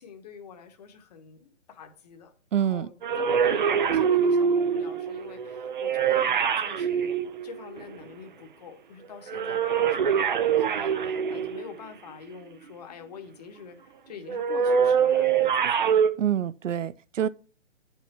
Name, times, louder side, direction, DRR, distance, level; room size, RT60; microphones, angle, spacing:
voice 1, 0.0-7.1 7.4-15.9, left 6 dB, 35° left, 1.1 m, -45 dB
voice 2, 2.5-2.9 16.2-17.3, right 9 dB, 90° right, 0.6 m, -26 dB
sound 1, 3.0-8.0 9.3-11.9 14.3-16.1, right 7 dB, 40° right, 0.5 m, -24 dB
8.2 x 5.7 x 4.3 m
hypercardioid pair, 160°, 37 cm